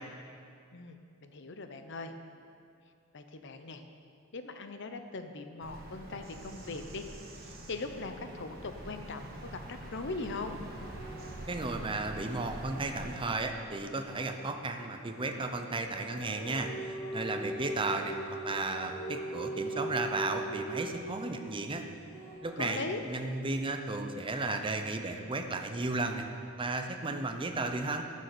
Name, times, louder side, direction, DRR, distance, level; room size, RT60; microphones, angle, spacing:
voice 1, 0.7-2.1 3.1-3.8 4.3-7.1 7.3-10.6 22.6-23.0, left 3 dB, 60° left, 7 dB, 0.8 m, -40 dB
Bird vocalization bird call bird song, 5.6-13.2, right 1 dB, 50° right, 1.5 m, -45 dB
sound 1, 10.8-22.4, equal, 15° left, 2.2 m, -55 dB
voice 2, 11.5-21.9 22.4-26.3 26.6-28.0, right 2 dB, 25° right, 5 dB, 0.7 m, -34 dB
sound 2, 15.5-21.8, right 1 dB, 80° left, 3.2 m, -39 dB
12.0 x 6.5 x 6.9 m, 2.5 s
head